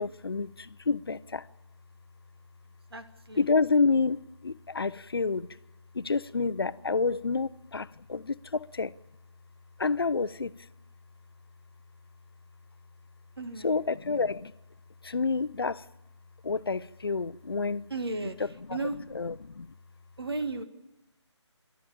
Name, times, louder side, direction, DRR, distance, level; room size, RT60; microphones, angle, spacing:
voice 1, 0.0-1.5 3.4-5.5 5.9-9.0 9.8-10.6 13.6-14.5 15.0-15.8 16.4-17.9 18.4-19.7, left 4 dB, 50° left, 0.6 m, -29 dB
voice 2, 2.9-3.4 13.4-13.7 17.9-18.4 18.7-19.0 20.2-20.6, right 3 dB, 55° right, 1.9 m, -34 dB
29.5 x 12.5 x 8.6 m
figure-of-eight pair, 180°, 15 cm